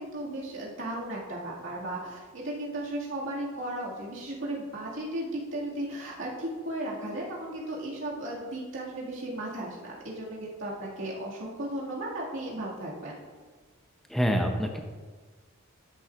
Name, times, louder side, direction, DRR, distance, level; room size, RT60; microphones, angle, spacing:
voice 1, 0.0-13.2, right 1 dB, 65° right, -5 dB, 2.2 m, -35 dB
voice 2, 14.1-14.8, equal, ahead, 3 dB, 0.7 m, -26 dB
12.0 x 7.1 x 2.5 m, 1.4 s
head